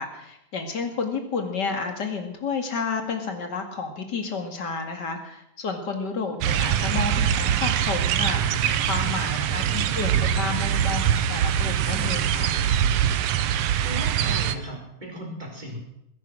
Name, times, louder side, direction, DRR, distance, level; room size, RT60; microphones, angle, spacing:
voice 1, 0.0-12.5, left 4 dB, 40° left, 5 dB, 2.5 m, -31 dB
sound 1, 6.4-14.6, right 9 dB, 70° right, 1.7 m, -23 dB
voice 2, 9.4-9.9 13.8-15.8, right 1 dB, 15° right, -1 dB, 4.4 m, -37 dB
21.0 x 11.0 x 6.2 m, 0.81 s
omnidirectional pair, 3.4 m